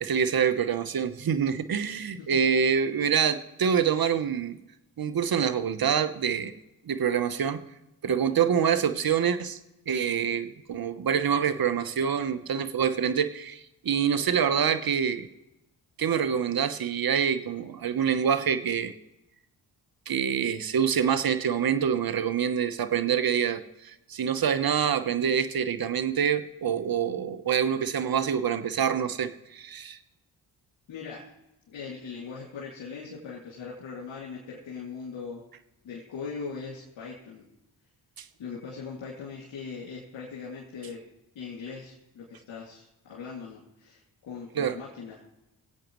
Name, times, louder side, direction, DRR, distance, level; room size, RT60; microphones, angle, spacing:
voice 1, 0.0-4.6 5.0-6.5 6.9-7.6 8.0-9.6 9.9-15.3 16.0-18.9 20.1-30.0 38.2-38.3 44.6-44.8, right 7 dB, 50° right, 11 dB, 1.0 m, -26 dB
voice 2, 2.3-2.6 30.9-31.3 31.7-35.4 35.8-37.4 38.4-41.0 41.3-45.2, left 5 dB, 75° left, -5 dB, 2.5 m, -40 dB
23.0 x 8.4 x 3.1 m, 0.92 s
supercardioid pair, 40°, 46 cm